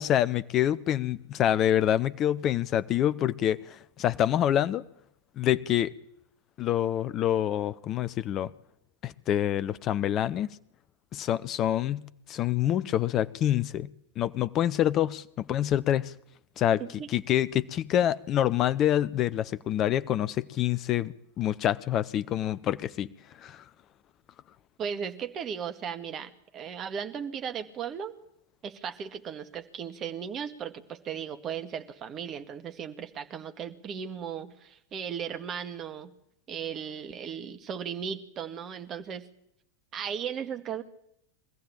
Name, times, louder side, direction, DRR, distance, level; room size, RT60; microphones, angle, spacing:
voice 1, 0.0-4.8 5.4-5.9 6.6-8.5 9.0-10.5 11.1-12.0 12.3-13.9 14.2-16.1 16.6-16.8 17.1-23.1 23.4-23.6, left 11 dB, 30° left, 0.8 m, -26 dB
voice 2, 24.8-28.1 28.6-36.1 36.5-39.3 39.9-40.8, right 7 dB, 30° right, 2.0 m, -36 dB
23.5 x 15.0 x 8.9 m
figure-of-eight pair, 90°, 0 cm